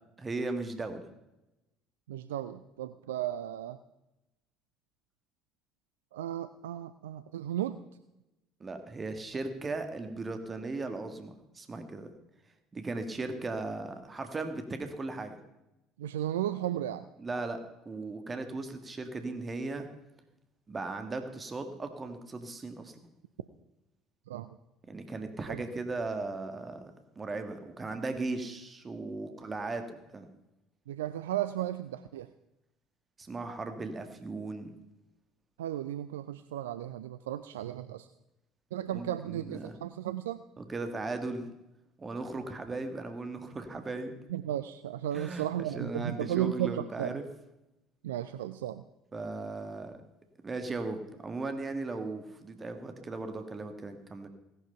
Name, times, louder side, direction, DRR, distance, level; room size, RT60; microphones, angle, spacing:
voice 1, 0.2-1.0 8.6-12.1 12.7-15.4 17.2-17.6 17.9-19.9 20.7-23.0 24.9-26.9 27.2-29.8 30.1-30.2 33.2-34.7 38.9-39.7 40.6-41.5 42.0-44.1 45.1-47.2 49.1-50.0 50.4-54.3, right 3 dB, 25° right, 7 dB, 1.8 m, -37 dB
voice 2, 2.1-3.8 6.1-7.8 16.0-17.0 24.3-24.6 25.5-25.6 30.9-32.3 35.6-38.1 38.7-40.4 44.3-47.2 48.0-48.8, right 12 dB, 70° right, 13 dB, 0.4 m, -34 dB
17.5 x 11.0 x 5.7 m, 0.95 s
figure-of-eight pair, 60°, 0 cm